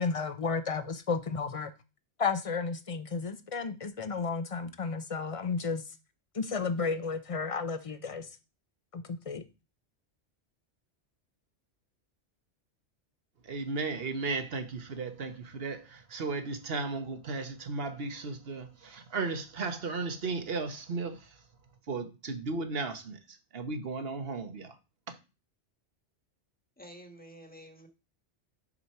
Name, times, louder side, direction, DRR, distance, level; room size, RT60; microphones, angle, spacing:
voice 1, 0.0-1.7 2.2-5.8 6.3-8.4 8.9-9.4, left 4 dB, 35° left, 0.6 m, -32 dB
voice 2, 13.4-21.4 21.9-23.2 23.5-24.8 25.1-25.2, right 3 dB, 60° right, 1.3 m, -35 dB
voice 3, 26.8-27.9, equal, 10° left, 1.3 m, -50 dB
6.7 x 4.5 x 5.6 m
omnidirectional pair, 1.2 m